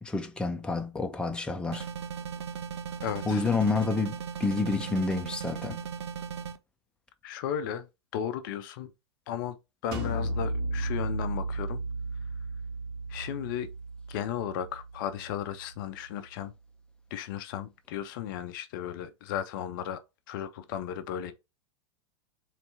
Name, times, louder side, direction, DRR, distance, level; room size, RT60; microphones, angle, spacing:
voice 1, 0.0-1.9 3.3-5.8, left 3 dB, 5° left, 0.6 m, -29 dB
sound 1, 1.7-6.6, right 7 dB, 65° right, 0.6 m, -37 dB
voice 2, 3.0-3.4 7.2-7.9 8.1-8.9 9.3-9.6 9.8-11.8 13.1-13.7 14.1-16.5 17.1-20.0 20.3-21.3, left 10 dB, 45° left, 0.5 m, -35 dB
sound 2, 9.9-15.6, right 2 dB, 45° right, 2.0 m, -34 dB
4.3 x 3.2 x 3.2 m
figure-of-eight pair, 95°, 15 cm